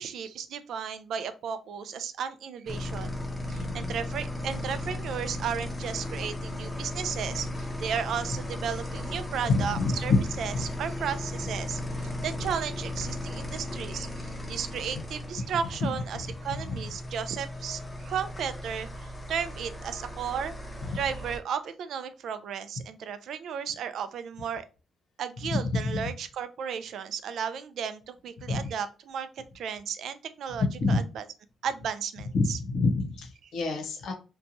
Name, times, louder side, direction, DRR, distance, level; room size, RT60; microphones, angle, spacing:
voice 1, 0.0-3.2 3.5-10.1 10.4-20.5 20.9-24.7 25.2-29.3 29.5-31.2 31.6-32.6, right 7 dB, 70° right, 11 dB, 0.3 m, -34 dB
sound 1, 2.7-21.4, left 1 dB, 15° left, 0.6 m, -36 dB
voice 2, 3.5-3.9 9.4-10.2 10.5-10.6 16.7-16.8 25.7-26.1 28.5-28.7 30.6-31.0 32.3-34.1, left 3 dB, 75° left, 2 dB, 0.8 m, -27 dB
2.9 x 2.2 x 2.6 m, 0.32 s
cardioid pair, 120°, 0 cm